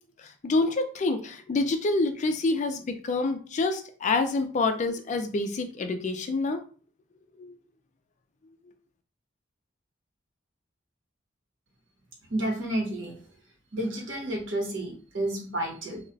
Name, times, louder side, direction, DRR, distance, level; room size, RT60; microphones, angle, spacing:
voice 1, 0.2-6.6 7.4-7.5, left 3 dB, 40° left, 7 dB, 0.3 m, -27 dB
voice 2, 12.3-13.1 13.7-16.0, right 1 dB, 75° right, 0 dB, 1.0 m, -30 dB
2.3 x 2.1 x 3.8 m, 0.40 s
head